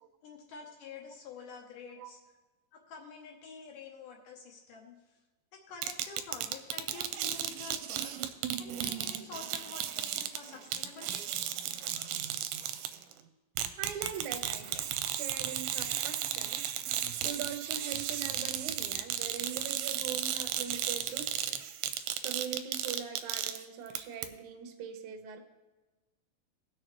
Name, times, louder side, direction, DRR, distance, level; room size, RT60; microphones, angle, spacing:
voice 1, 0.2-2.2 2.7-5.0 5.5-8.2 8.6-11.3, left 5 dB, 70° left, 1 dB, 2.2 m, -48 dB
sound 1, 5.8-13.1 13.6-24.0 24.2-24.3, right 10 dB, 85° right, 2.4 m, -35 dB
voice 2, 13.8-16.6 17.2-21.6 22.2-25.4, right 7 dB, 65° right, 5 dB, 2.0 m, -42 dB
17.5 x 6.6 x 3.0 m, 1.2 s
omnidirectional pair, 4.4 m